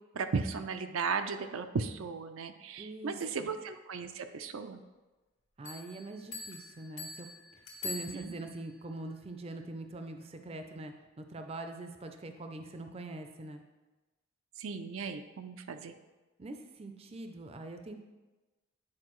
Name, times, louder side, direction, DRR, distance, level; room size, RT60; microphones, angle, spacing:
voice 1, 0.1-4.8 8.0-8.4 14.6-16.0, right 5 dB, 85° right, 8 dB, 0.5 m, -36 dB
voice 2, 2.8-3.2 5.6-7.3 7.8-13.6 16.4-18.0, right 2 dB, 30° right, 6 dB, 0.4 m, -43 dB
Bell, 5.6-8.7, left 3 dB, 75° left, 1.2 m, -44 dB
9.7 x 4.5 x 3.1 m, 1.1 s
head